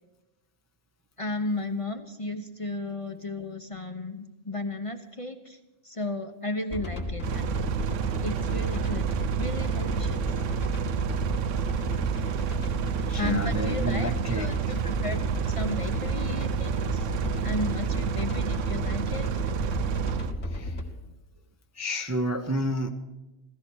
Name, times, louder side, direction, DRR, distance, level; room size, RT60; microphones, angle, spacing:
voice 1, 1.2-5.6 5.8-7.5 8.2-9.1 9.3-10.2 13.2-17.1 17.4-19.3, left 2 dB, 30° left, 7 dB, 0.8 m, -34 dB
sound 1, 6.7-20.8, left 1 dB, 70° left, 2.3 m, -33 dB
sound 2, 7.2-20.3, right 10 dB, 75° right, 1.0 m, -30 dB
voice 2, 13.0-14.7 20.5-20.8 21.7-22.9, equal, 15° right, 5 dB, 0.6 m, -30 dB
16.0 x 14.0 x 6.3 m, 1.0 s
omnidirectional pair, 1.3 m